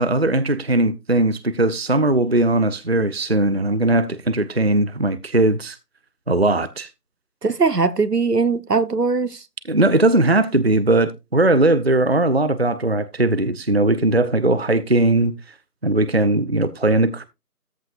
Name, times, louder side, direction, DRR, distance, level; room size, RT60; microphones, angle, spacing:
voice 1, 0.0-5.8 6.3-6.9 9.7-15.3 15.8-17.2, right 2 dB, 40° right, 0.6 m, -19 dB
voice 2, 7.4-9.4, right 4 dB, 80° right, 1.3 m, -20 dB
14.0 x 8.0 x 2.5 m
figure-of-eight pair, 165°, 47 cm